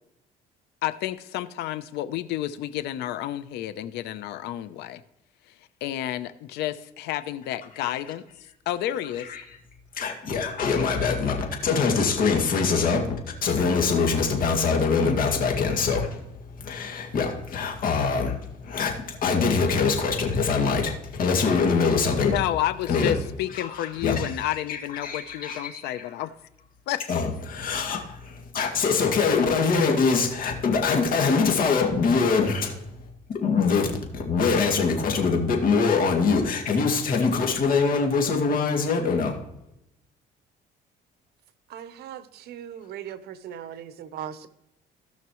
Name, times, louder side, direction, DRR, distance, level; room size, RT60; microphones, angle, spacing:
voice 1, 0.8-5.0 5.5-8.2 8.7-9.3 22.2-26.3 26.9-27.0, left 13 dB, 85° left, 13 dB, 0.7 m, -30 dB
voice 2, 9.0-9.6 9.9-13.1 13.4-22.5 22.9-23.2 23.5-26.2 27.1-33.9 34.1-39.4, left 5 dB, 60° left, 2 dB, 2.2 m, -24 dB
voice 3, 41.7-44.5, right 9 dB, 75° right, 12 dB, 0.9 m, -39 dB
17.5 x 5.9 x 3.1 m, 0.84 s
cardioid pair, 110°, 17 cm